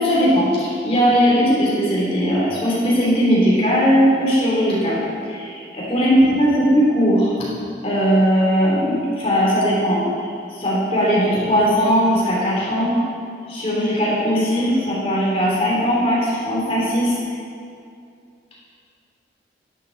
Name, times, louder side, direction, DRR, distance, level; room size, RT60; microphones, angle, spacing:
voice 1, 0.0-7.3 7.8-13.0 13.5-17.1, equal, 35° left, -6 dB, 3.4 m, -18 dB
12.5 x 10.0 x 4.1 m, 2.4 s
head